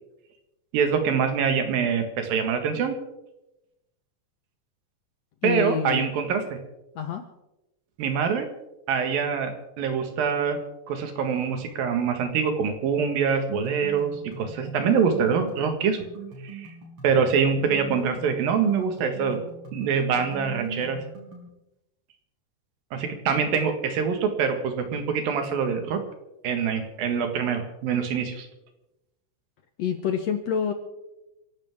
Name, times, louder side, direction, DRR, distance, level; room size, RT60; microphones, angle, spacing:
voice 1, 0.7-3.0 5.4-6.6 8.0-8.5 8.9-9.5 9.8-10.6 10.9-14.1 14.4-16.0 16.4-16.7 17.0-19.4 19.7-21.0 22.9-26.0 26.4-28.5, right 6 dB, 80° right, 6 dB, 3.4 m, -24 dB
voice 2, 5.4-6.1 7.0-7.3 29.8-30.7, left 8 dB, 65° left, 6 dB, 1.7 m, -27 dB
sound 1, 13.5-21.5, right 3 dB, 35° right, 5.6 m, -41 dB
30.0 x 11.5 x 3.6 m, 0.94 s
omnidirectional pair, 4.1 m